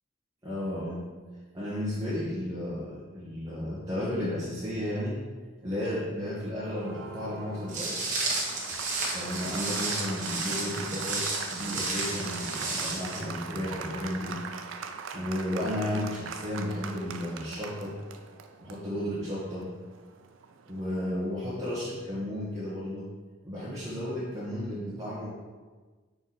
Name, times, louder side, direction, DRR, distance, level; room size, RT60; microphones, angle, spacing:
voice 1, 0.4-1.1 1.5-5.2 5.6-8.1 9.1-14.4 15.1-18.0 18.6-19.7 20.7-23.1 23.4-25.3, left 1 dB, 20° right, -10 dB, 1.4 m, -33 dB
Applause, 6.6-21.0, right 5 dB, 90° right, 0.5 m, -41 dB
Walk footsteps, 7.7-13.2, right 3 dB, 40° right, 1.3 m, -32 dB
6.1 x 4.8 x 4.1 m, 1.4 s
head